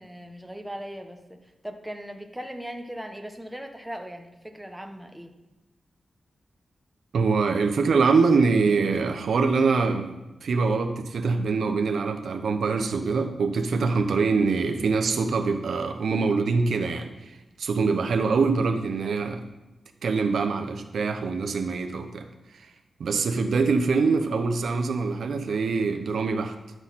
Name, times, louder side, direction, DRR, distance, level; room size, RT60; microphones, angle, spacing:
voice 1, 0.0-5.3, equal, 5° right, 4 dB, 1.0 m, -39 dB
voice 2, 7.1-10.1 10.4-19.4 20.0-22.7 23.0-26.5, right 4 dB, 85° right, 6 dB, 0.8 m, -24 dB
11.5 x 6.3 x 4.2 m, 1.0 s
wide cardioid pair, 90°, 0 cm